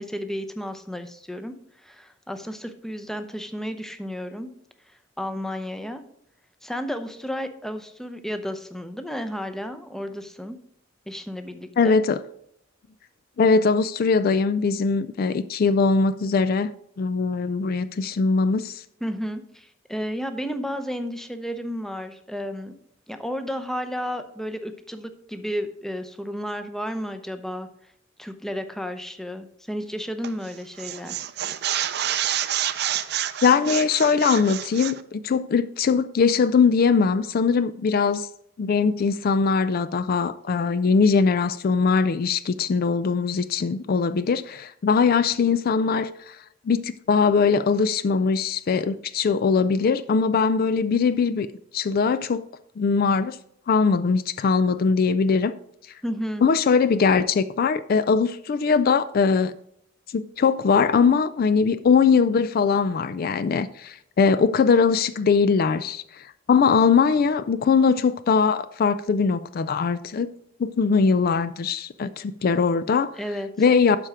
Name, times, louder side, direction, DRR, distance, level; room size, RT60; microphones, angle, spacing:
voice 1, 0.0-1.5 1.8-4.5 5.2-6.0 6.6-10.6 11.1-11.9 19.0-22.7 23.1-27.7 28.2-31.1 56.0-56.5 73.2-73.5, equal, ahead, 0.6 m, -32 dB
voice 2, 11.8-12.2 13.4-16.7 17.0-18.8 33.4-38.3 38.6-46.4 46.7-51.5 51.7-52.4 52.8-53.4 53.7-55.5 56.4-59.5 60.1-70.3 70.6-73.1 73.6-74.0, left 5 dB, 50° left, 0.4 m, -21 dB
sound 1, 30.2-30.5 30.8-35.0, right 11 dB, 60° right, 0.5 m, -28 dB
12.0 x 4.4 x 4.9 m
head